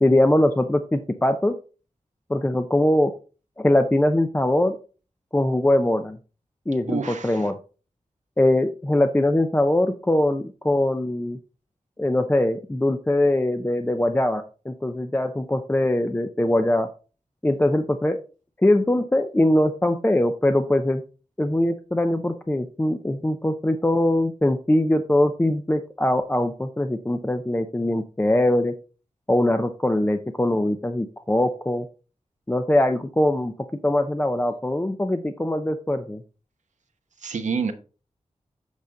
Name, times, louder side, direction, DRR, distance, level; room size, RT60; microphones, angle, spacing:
voice 1, 0.0-1.6 2.3-3.1 3.6-4.8 5.3-6.2 6.7-7.5 8.4-11.4 12.0-16.9 17.4-18.2 18.6-21.0 21.4-28.8 29.3-31.9 32.5-33.5 33.8-36.2, left 1 dB, 15° left, 7 dB, 0.6 m, -22 dB
voice 2, 6.9-7.4 37.2-37.7, right 5 dB, 90° right, 6 dB, 1.0 m, -27 dB
8.1 x 5.0 x 3.9 m, 0.36 s
wide cardioid pair, 85°, 12 cm